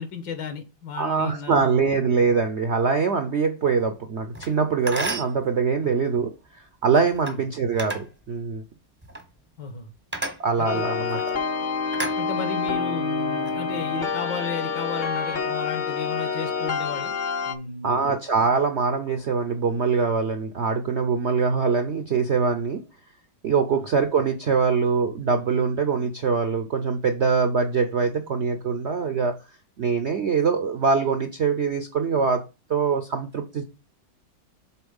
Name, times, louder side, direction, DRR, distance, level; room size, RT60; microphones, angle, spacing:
voice 1, 0.0-2.0 7.2-7.5 9.6-9.9 10.6-10.8 12.2-17.2 17.5-18.0 23.7-23.8, left 6 dB, 70° left, 1.8 m, -34 dB
voice 2, 0.9-8.6 10.4-11.2 17.8-22.8 23.4-29.3 29.8-32.4 32.7-33.6, right 5 dB, 75° right, 0.6 m, -23 dB
sound 1, 4.3-4.5 4.9-5.4 7.1-7.4 7.8-8.1 9.0-9.3 10.1-10.4 11.1-11.3 11.9-12.7 13.2-13.5, right 2 dB, 15° right, 0.4 m, -32 dB
sound 2, 10.6-17.5, left 5 dB, 55° left, 0.5 m, -27 dB
7.1 x 3.9 x 5.3 m
omnidirectional pair, 2.0 m